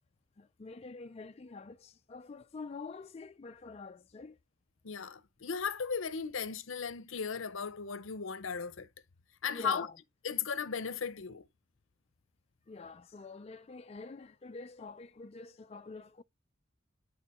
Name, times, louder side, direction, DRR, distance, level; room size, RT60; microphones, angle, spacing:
voice 1, 0.4-4.4 9.5-10.0 12.7-16.2, left 3 dB, 30° left, 0.4 m, -46 dB
voice 2, 4.8-8.9 9.4-9.9 10.2-11.5, left 6 dB, 75° left, 0.7 m, -36 dB
10.5 x 3.7 x 4.2 m
head